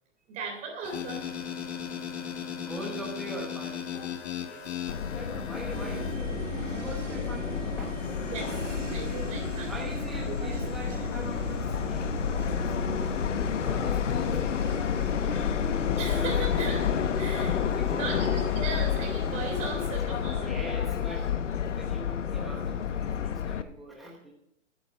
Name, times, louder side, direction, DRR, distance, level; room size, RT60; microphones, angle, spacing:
voice 1, 0.3-1.3 8.3-9.8 10.3-10.5 15.9-17.6 17.9-20.6, right 4 dB, 20° right, 2 dB, 3.1 m, -37 dB
sound 1, 0.8-6.1, left 8 dB, 60° left, 1.9 m, -37 dB
voice 2, 2.6-8.0 9.7-13.2 13.6-15.7 17.7-18.2 20.5-21.3 21.7-24.3, right 1 dB, ahead, -2 dB, 1.0 m, -43 dB
Subway metro underground, 4.9-23.6, left 8 dB, 75° left, 1.1 m, -30 dB
sound 2, 5.7-19.8, right 4 dB, 80° right, 2.3 m, -39 dB
14.5 x 9.8 x 4.5 m, 0.75 s
hypercardioid pair, 155°, 37 cm